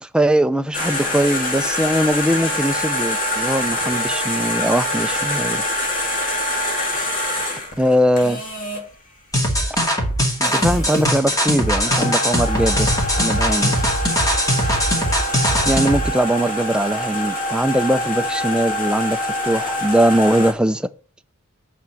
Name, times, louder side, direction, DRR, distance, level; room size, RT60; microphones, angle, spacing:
voice 1, 0.0-5.6 6.9-7.1 7.8-8.4 10.4-12.9 13.2-13.7 15.7-20.9, right 1 dB, 5° right, 0.5 m, -20 dB
sound 1, 0.7-8.8 10.1-10.2 10.4-20.5, left 1 dB, 40° left, 2.3 m, -25 dB
sound 2, 9.3-16.1, equal, 15° left, 2.4 m, -20 dB
6.9 x 5.9 x 7.5 m
head